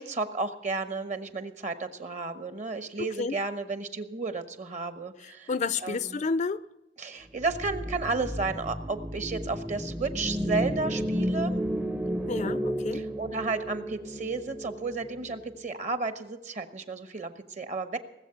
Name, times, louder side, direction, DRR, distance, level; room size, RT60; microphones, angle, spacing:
voice 1, 0.0-5.5 5.8-6.2 7.0-11.6 12.9-18.0, right 3 dB, 45° right, 1.2 m, -33 dB
voice 2, 3.0-3.4 5.2-6.6 12.3-13.0, left 4 dB, 40° left, 0.4 m, -31 dB
sound 1, 7.4-15.7, equal, 10° right, 0.6 m, -32 dB
19.0 x 7.6 x 7.8 m
head